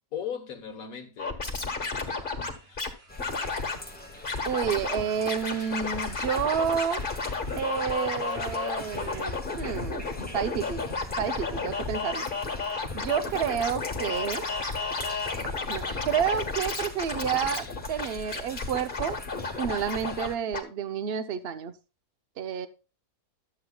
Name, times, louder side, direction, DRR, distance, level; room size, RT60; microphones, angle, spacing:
voice 1, 0.1-2.9, left 8 dB, 65° left, 1.5 m, -40 dB
Scratching (performance technique), 1.2-2.9 3.2-3.8 4.2-5.0 5.3-20.3 20.5-20.6, left 4 dB, 35° left, 1.5 m, -32 dB
sound 1, 1.5-9.3, right 2 dB, 70° right, 2.6 m, -51 dB
sound 2, 3.1-20.4, left 2 dB, 10° left, 0.7 m, -44 dB
voice 2, 4.4-7.0 7.6-10.0 10.3-10.9 11.2-12.3 12.9-14.5 15.7-19.2 19.6-21.7 22.4-22.7, right 8 dB, 50° right, 0.8 m, -30 dB
12.5 x 7.9 x 2.2 m
omnidirectional pair, 1.6 m